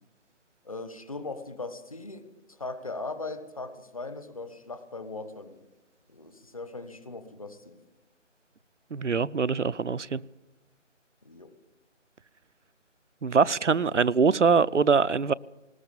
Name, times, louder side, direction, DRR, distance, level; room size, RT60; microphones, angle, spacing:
voice 1, 0.6-5.6 6.1-7.8 11.2-11.5, left 3 dB, 30° left, 1.2 m, -39 dB
voice 2, 8.9-10.2 13.2-15.3, right 5 dB, 70° right, 0.7 m, -23 dB
20.5 x 19.5 x 7.1 m
figure-of-eight pair, 160°, 38 cm